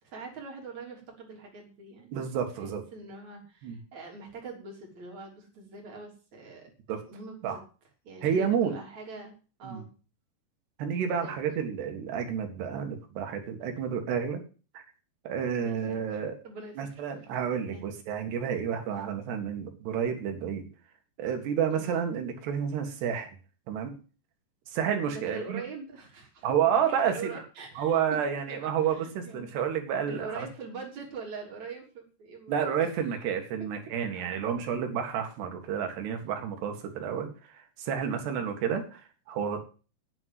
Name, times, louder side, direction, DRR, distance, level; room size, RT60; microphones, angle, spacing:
voice 1, 0.0-2.3 2.6-6.7 7.1-7.6 8.0-9.3 9.6-9.9 11.0-11.3 15.6-15.8 16.1-17.0 17.7-17.8 21.7-21.8 25.1-28.0 28.5-29.5 30.1-32.9 34.1-34.4 38.1-38.2, right 4 dB, 45° right, 0 dB, 4.4 m, -43 dB
voice 2, 2.1-2.8 3.6-3.8 6.9-7.0 7.4-7.6 8.2-8.7 9.6-9.8 10.8-14.4 14.7-14.8 15.3-16.4 16.8-20.7 21.2-23.3 23.7-23.9 24.7-25.6 26.4-27.4 27.8-30.5 32.5-39.6, right 8 dB, 70° right, 5 dB, 4.0 m, -30 dB
9.8 x 7.6 x 7.8 m, 0.36 s
omnidirectional pair, 5.0 m